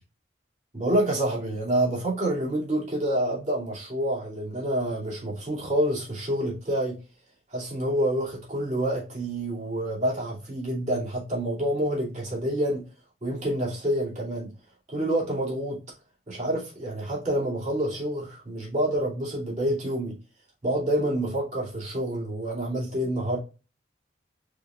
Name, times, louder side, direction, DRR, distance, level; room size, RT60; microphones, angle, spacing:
voice 1, 0.7-7.0 7.5-12.9 13.2-14.5 14.9-15.8 16.3-20.1 20.6-23.4, right 1 dB, 40° right, 2.4 m, -27 dB
4.8 x 4.6 x 2.4 m
head